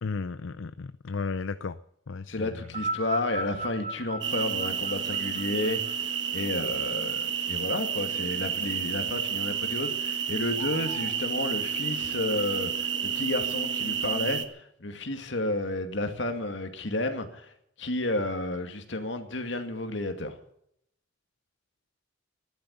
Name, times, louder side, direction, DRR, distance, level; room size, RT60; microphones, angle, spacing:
voice 1, 0.0-1.8 2.1-2.8, left 4 dB, 85° left, 13 dB, 0.6 m, -34 dB
voice 2, 2.3-6.1 6.3-17.5 17.8-20.3, left 2 dB, 70° left, 6 dB, 2.3 m, -31 dB
sound 1, 2.6-7.2 8.1-8.2, right 2 dB, 35° right, 1.1 m, -36 dB
sound 2, 4.2-14.4, right 8 dB, 65° right, 1.5 m, -30 dB
14.0 x 12.0 x 8.3 m, 0.73 s
head